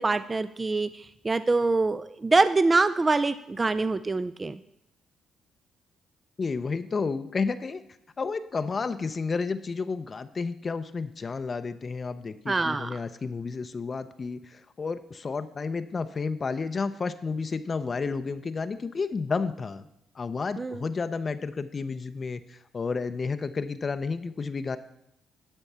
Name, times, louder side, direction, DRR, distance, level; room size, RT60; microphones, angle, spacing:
voice 1, 0.0-4.6 12.5-13.0 20.6-20.8, right 3 dB, 25° right, 13 dB, 0.3 m, -25 dB
voice 2, 6.4-7.8 8.2-19.9 20.1-24.8, left 4 dB, 35° left, 10 dB, 0.5 m, -31 dB
12.0 x 4.4 x 6.7 m, 0.79 s
cardioid pair, 90°, 0 cm